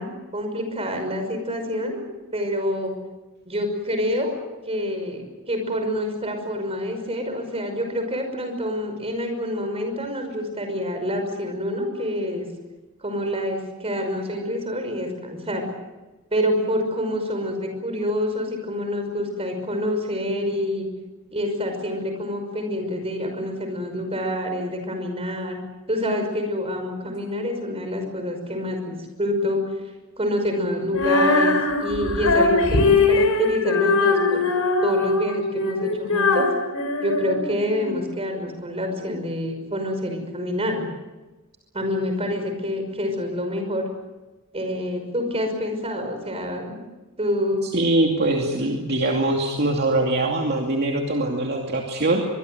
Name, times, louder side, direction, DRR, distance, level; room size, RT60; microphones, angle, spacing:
voice 1, 0.0-2.0 2.3-2.9 3.5-4.4 4.7-12.5 13.0-15.6 16.3-20.9 21.3-25.6 25.9-29.6 30.2-34.4 34.8-36.5 37.0-40.9 41.7-43.9 44.5-46.8 47.2-47.6, left 1 dB, 25° right, 5 dB, 5.6 m, -27 dB
Female singing, 30.9-38.0, left 3 dB, 80° left, 4.5 m, -21 dB
voice 2, 47.6-52.2, right 2 dB, 50° right, 1 dB, 2.5 m, -22 dB
24.5 x 22.0 x 7.9 m, 1.1 s
head